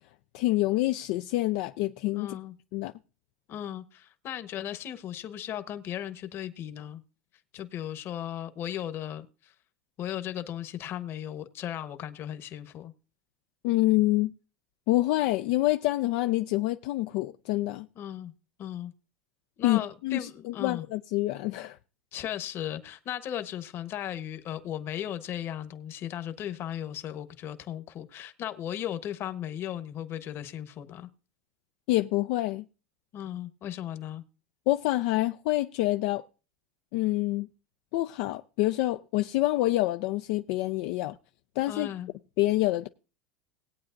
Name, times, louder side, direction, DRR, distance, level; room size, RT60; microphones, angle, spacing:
voice 1, 0.3-2.4 2.7-2.9 13.6-14.3 14.9-17.9 19.6-21.8 31.9-32.7 34.7-36.2 36.9-37.5 37.9-41.1 41.6-41.9 42.4-42.9, left 17 dB, 60° left, 0.4 m, -27 dB
voice 2, 2.1-2.5 3.5-7.0 7.5-9.5 10.0-12.9 17.9-18.3 18.6-18.9 19.6-20.8 22.1-31.1 33.1-34.2 41.7-42.1, left 11 dB, 40° left, 1.2 m, -36 dB
19.5 x 8.5 x 2.6 m
supercardioid pair, 120°, 6 cm